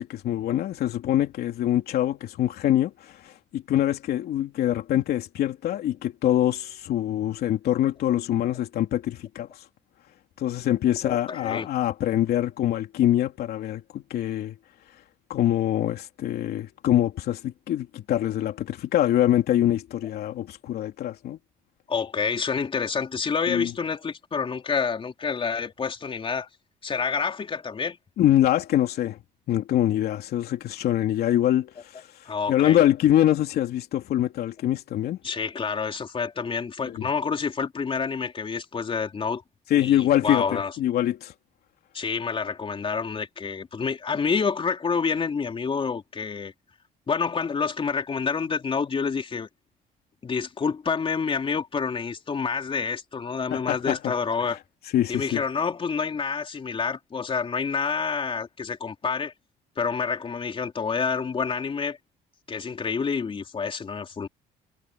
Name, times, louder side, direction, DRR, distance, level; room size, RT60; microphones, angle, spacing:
voice 1, 0.0-9.5 10.4-14.5 15.3-21.4 23.5-23.7 28.2-29.2 29.5-32.1 32.5-35.2 36.9-37.0 39.7-41.3 53.5-54.1 54.9-55.4, left 12 dB, 65° left, 3.1 m, -24 dB
voice 2, 11.0-11.7 21.9-26.5 26.8-28.0 32.3-32.8 35.2-39.4 39.8-40.8 41.9-46.5 47.1-49.5 50.2-54.6 55.1-59.3 59.8-62.0 62.5-64.3, left 5 dB, 30° left, 3.9 m, -28 dB
cardioid pair, 110°, 17 cm